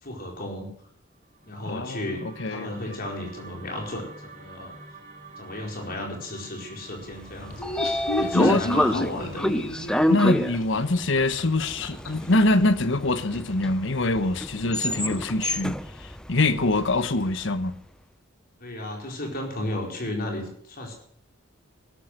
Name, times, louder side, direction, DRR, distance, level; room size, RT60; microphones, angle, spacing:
voice 1, 0.0-0.7 1.4-4.7 5.4-7.7 8.2-9.5 18.6-20.9, left 1 dB, 45° left, 4.6 m, -34 dB
sound 1, 1.1-11.4, right 3 dB, 40° right, 3.8 m, -49 dB
voice 2, 1.6-3.0 8.2-8.6 10.1-17.8, left 2 dB, 65° left, 1.1 m, -24 dB
Train / Sliding door, 7.2-17.3, equal, 5° left, 0.6 m, -28 dB
Laughter, 7.5-12.1, left 2 dB, 80° left, 2.3 m, -31 dB
16.5 x 12.5 x 6.5 m
head